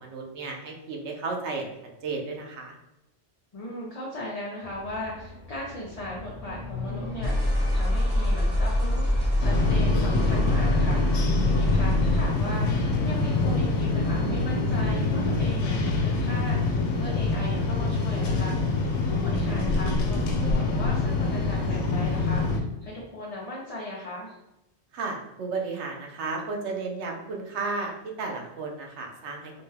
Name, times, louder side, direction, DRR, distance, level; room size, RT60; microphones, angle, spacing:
voice 1, 0.0-1.7 2.0-2.8 24.9-29.5, right 3 dB, 80° right, 1 dB, 1.0 m, -33 dB
voice 2, 3.5-18.6 19.0-24.3, left 1 dB, 40° left, -4 dB, 0.6 m, -38 dB
sound 1, 4.6-12.5, left 1 dB, 25° right, 0.8 m, -26 dB
sound 2, 9.4-22.6, left 3 dB, 80° left, 0.9 m, -25 dB
4.2 x 2.2 x 3.3 m, 0.90 s
omnidirectional pair, 1.1 m